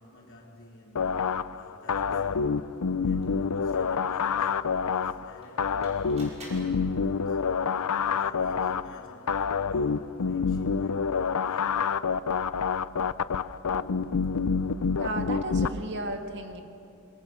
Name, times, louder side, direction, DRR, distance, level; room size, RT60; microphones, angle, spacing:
voice 1, 0.0-2.5 3.0-7.6 8.0-12.0, left 1 dB, 60° left, 4.0 m, -52 dB
sound 1, 0.9-15.7, left 5 dB, 85° left, 0.6 m, -27 dB
sound 2, 3.2-8.4, right 1 dB, 30° right, 6.1 m, -52 dB
voice 2, 15.0-16.6, right 1 dB, 55° right, 1.9 m, -34 dB
27.0 x 22.5 x 6.9 m
head